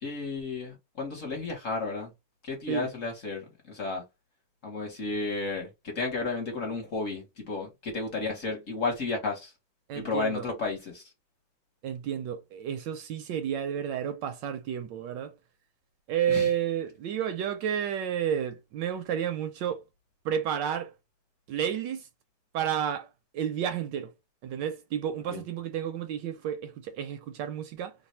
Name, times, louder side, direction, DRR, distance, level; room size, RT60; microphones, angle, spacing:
voice 1, 0.0-2.1 2.4-4.0 4.6-9.5 9.9-11.0 16.3-16.5 25.3-25.4, left 3 dB, 45° left, 1.2 m, -33 dB
voice 2, 9.9-10.5 11.8-15.3 16.1-19.8 20.2-20.9 21.5-22.1 22.5-23.1 23.3-24.1 24.4-27.9, right 9 dB, 75° right, 1.1 m, -31 dB
3.2 x 2.2 x 4.2 m
omnidirectional pair, 2.2 m